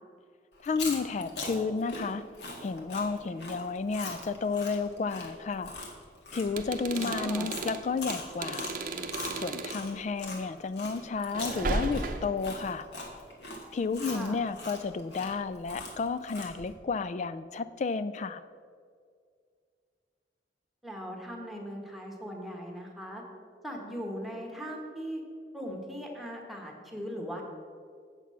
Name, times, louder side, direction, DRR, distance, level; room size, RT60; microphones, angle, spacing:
Chewing mastication, 0.6-10.4 10.8-16.7, left 2 dB, 75° left, 1.8 m, -41 dB
voice 1, 0.6-2.2 2.6-5.7 6.3-8.7 9.3-12.9 13.7-18.4, left 4 dB, 40° left, 12 dB, 0.3 m, -32 dB
sound 1, 6.5-9.8 11.3-12.5, right 3 dB, 50° right, 0.7 m, -35 dB
voice 2, 6.9-7.5 14.0-14.4 20.8-23.2 23.6-25.2 25.5-27.4, equal, ahead, 0 dB, 1.3 m, -39 dB
8.0 x 7.3 x 5.6 m, 2.1 s
head